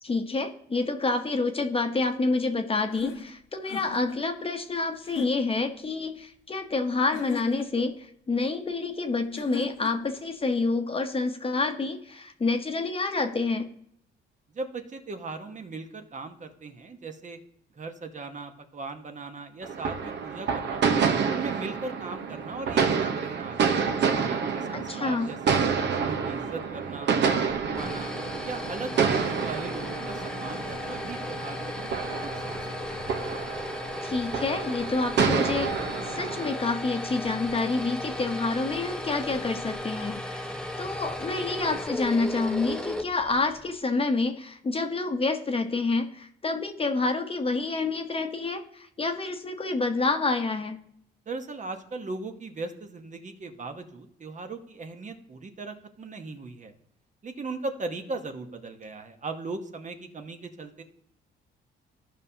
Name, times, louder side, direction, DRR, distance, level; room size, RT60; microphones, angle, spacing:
voice 1, 0.0-13.7 24.7-25.3 34.0-50.8, left 3 dB, 30° left, 6 dB, 1.0 m, -28 dB
sound 1, 2.9-4.2 5.0-5.7 7.1-7.9 9.3-10.1, left 7 dB, 80° left, 1.2 m, -38 dB
voice 2, 14.5-17.4 17.7-20.9 21.2-25.6 25.9-28.1 28.4-32.5 32.9-33.0 51.3-56.7 57.2-60.8, right 3 dB, 40° right, 6 dB, 1.1 m, -38 dB
sound 2, 19.6-36.5, right 6 dB, 60° right, 1.0 m, -28 dB
sound 3, 27.5-43.7, left 1 dB, 5° left, 0.9 m, -35 dB
14.5 x 5.5 x 2.8 m, 0.71 s
cardioid pair, 90°, 20 cm